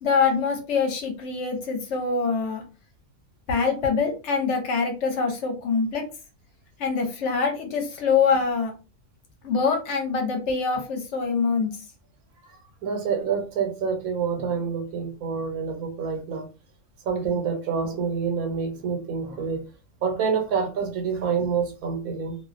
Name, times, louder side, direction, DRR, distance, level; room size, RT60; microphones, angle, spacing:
voice 1, 0.0-2.6 3.5-6.1 6.8-8.7 9.4-11.7, left 5 dB, 65° left, 3 dB, 0.9 m, -24 dB
voice 2, 12.5-16.5 17.0-19.6 20.0-22.4, right 6 dB, 85° right, 3 dB, 1.2 m, -27 dB
2.5 x 2.2 x 2.4 m, 0.32 s
omnidirectional pair, 1.4 m